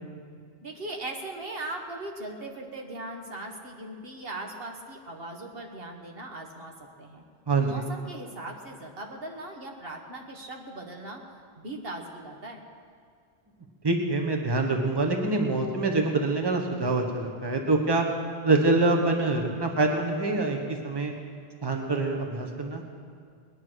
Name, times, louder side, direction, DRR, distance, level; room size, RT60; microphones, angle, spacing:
voice 1, 0.6-6.7 7.0-7.2 7.6-11.2 11.6-12.6, right 2 dB, 70° right, 2 dB, 1.6 m, -39 dB
voice 2, 7.5-7.8 13.8-18.1 18.4-21.1 21.6-22.8, right 2 dB, 25° right, 2 dB, 1.3 m, -25 dB
20.0 x 10.5 x 6.4 m, 2.2 s
omnidirectional pair, 1.0 m